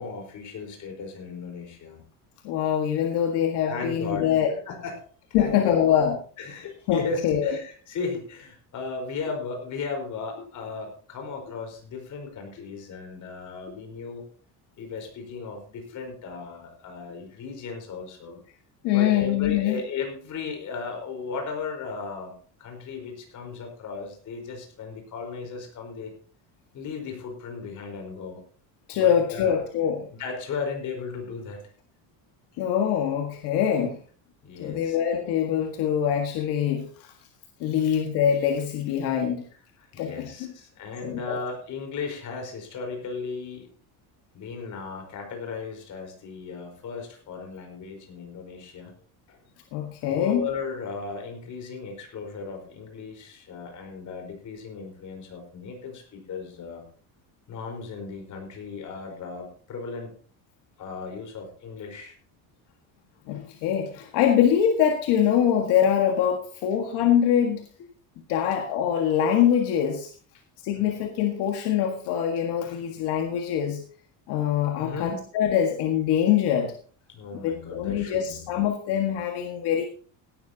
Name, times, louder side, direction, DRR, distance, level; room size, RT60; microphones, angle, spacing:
voice 1, 0.0-2.0 3.6-4.3 4.6-5.1 5.4-5.8 6.4-14.2 14.8-18.4 18.9-26.1 26.7-28.4 28.9-29.5 30.2-31.6 34.4-35.0 39.8-43.7 44.3-48.9 49.3-49.4 50.0-56.8 57.5-60.2 60.8-62.1 70.8-70.9 74.8-75.2 77.1-78.4, left 4 dB, 50° left, 3 dB, 4.7 m, -36 dB
voice 2, 2.4-4.5 5.3-6.1 6.9-7.5 18.8-19.8 28.9-30.1 32.6-34.0 34.6-37.1 37.6-39.4 40.0-40.5 41.0-41.4 49.7-50.5 63.3-67.7 68.3-70.1 70.6-73.8 74.3-76.7 77.4-79.9, left 9 dB, 80° left, 3 dB, 1.8 m, -24 dB
17.0 x 12.0 x 2.9 m, 0.43 s
cardioid pair, 145°, 39 cm